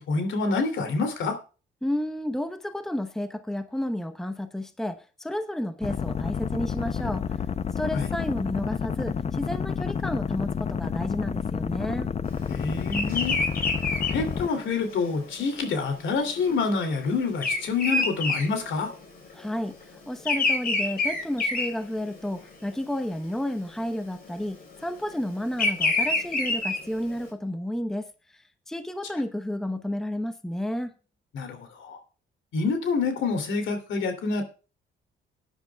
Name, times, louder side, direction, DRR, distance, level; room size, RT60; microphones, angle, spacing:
voice 1, 0.0-1.4 7.9-8.1 12.5-13.4 14.1-18.9 31.3-32.0 32.5-34.4, left 4 dB, 75° left, 7 dB, 2.8 m, -27 dB
voice 2, 1.8-7.2 7.8-12.1 19.3-28.1 28.3-30.9, left 1 dB, ahead, 10 dB, 0.9 m, -31 dB
sound 1, 5.8-14.5, left 6 dB, 35° left, 0.6 m, -30 dB
Bird vocalization bird call bird song, 12.9-19.3 19.6-22.4 22.9-23.3 24.2-27.2, left 2 dB, 50° left, 4.4 m, -27 dB
19.5 x 10.0 x 2.3 m, 0.34 s
cardioid pair, 90°, 20 cm